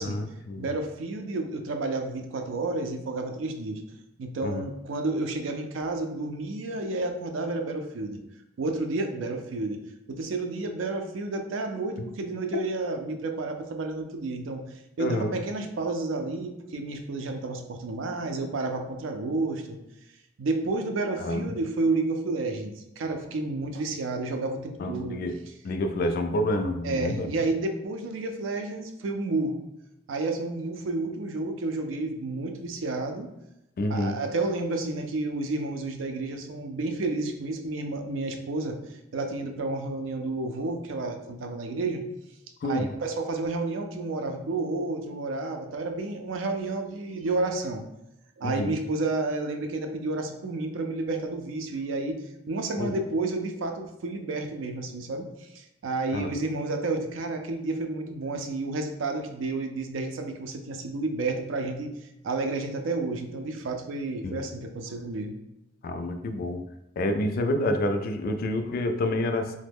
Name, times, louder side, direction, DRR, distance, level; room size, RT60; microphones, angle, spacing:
voice 1, 0.0-0.7 4.4-4.6 15.0-15.4 21.2-21.5 24.8-25.3 25.6-27.3 33.8-34.2 42.6-42.9 48.4-48.8 52.8-52.9 56.1-56.4 64.2-64.4 65.8-66.6 67.0-69.6, left 1 dB, 50° left, 7 dB, 0.3 m, -28 dB
voice 2, 0.6-3.8 4.2-8.2 8.6-9.8 10.1-14.7 15.0-19.8 20.4-25.2 26.8-29.6 30.1-33.3 33.9-38.8 39.1-42.0 42.6-47.8 48.4-52.2 52.5-61.9 62.2-65.3, right 2 dB, 85° right, 5 dB, 0.4 m, -31 dB
3.1 x 2.1 x 3.4 m, 0.88 s
head